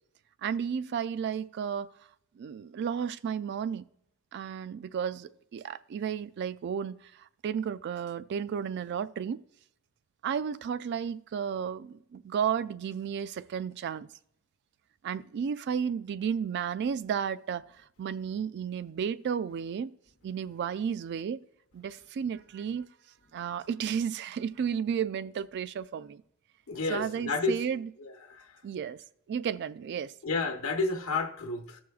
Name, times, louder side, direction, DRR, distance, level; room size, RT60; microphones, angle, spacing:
voice 1, 0.4-1.9 2.4-3.8 4.3-9.4 10.2-14.1 15.0-17.6 18.0-19.9 20.2-21.4 21.7-22.9 23.3-26.2 26.9-27.9 28.6-30.1, right 7 dB, 55° right, 0.3 m, -33 dB
voice 2, 26.7-27.6 28.0-28.5 30.2-31.8, left 3 dB, 75° left, 0.9 m, -31 dB
15.5 x 6.2 x 2.3 m
head